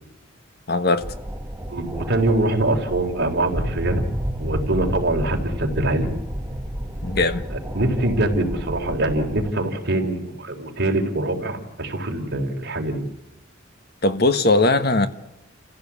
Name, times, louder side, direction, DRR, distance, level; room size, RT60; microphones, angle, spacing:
voice 1, 0.7-1.1 7.0-7.5 14.0-15.1, left 2 dB, 50° left, 1.5 m, -19 dB
sound 1, 1.0-9.5, equal, 10° right, 1.3 m, -30 dB
voice 2, 1.7-4.0 4.4-6.1 7.7-13.0, right 2 dB, 55° right, 3.9 m, -23 dB
29.5 x 15.5 x 8.5 m
head